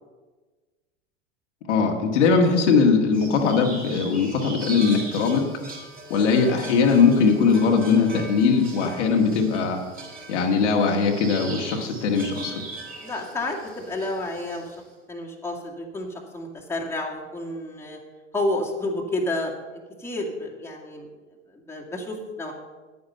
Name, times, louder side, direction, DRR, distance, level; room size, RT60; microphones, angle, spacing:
voice 1, 1.7-5.4 6.1-9.8 10.3-12.5, left 5 dB, 70° left, 2 dB, 1.8 m, -20 dB
sound 1, 3.1-14.8, right 2 dB, 25° right, 3.3 m, -40 dB
voice 2, 13.0-14.7 15.1-18.0 18.3-19.5 20.0-21.1 21.5-22.5, left 1 dB, 5° left, -2 dB, 2.1 m, -30 dB
9.6 x 9.5 x 5.6 m, 1.3 s
hypercardioid pair, 85°, 37 cm